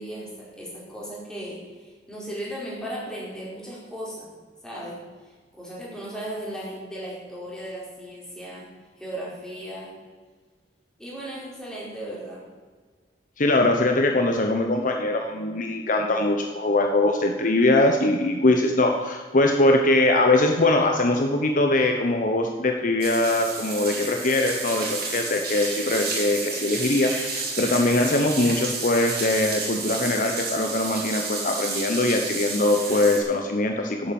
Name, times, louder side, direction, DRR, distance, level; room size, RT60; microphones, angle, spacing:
voice 1, 0.0-4.3 4.6-5.0 5.2-8.7 9.0-9.9 11.0-12.4, right 1 dB, 5° left, -6 dB, 4.6 m, -36 dB
voice 2, 13.4-34.1, left 2 dB, 50° left, 4 dB, 1.0 m, -22 dB
sound 1, 23.0-33.2, right 4 dB, 60° right, 3.7 m, -31 dB
11.5 x 8.9 x 7.2 m, 1.4 s
head